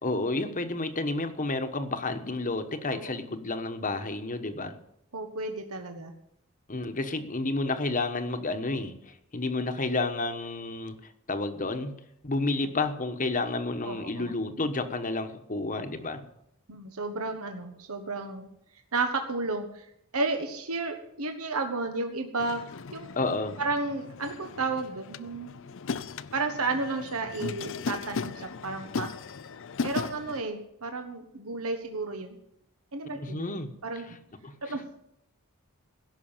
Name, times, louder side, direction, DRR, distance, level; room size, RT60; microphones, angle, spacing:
voice 1, 0.0-4.8 6.7-8.9 9.3-11.0 11.3-11.9 12.2-16.2 23.2-23.6 33.2-33.7 34.4-34.6, left 2 dB, 35° left, 8 dB, 1.2 m, -30 dB
voice 2, 5.1-6.1 13.8-14.3 16.7-18.5 18.9-19.8 20.1-22.6 22.9-23.1 23.6-25.5 26.3-29.1 29.8-32.4 32.9-34.1 34.6-34.9, right 3 dB, 80° right, 5 dB, 1.4 m, -32 dB
sound 1, 22.4-30.4, left 5 dB, 60° left, 0.5 m, -37 dB
16.5 x 6.1 x 8.9 m, 0.79 s
head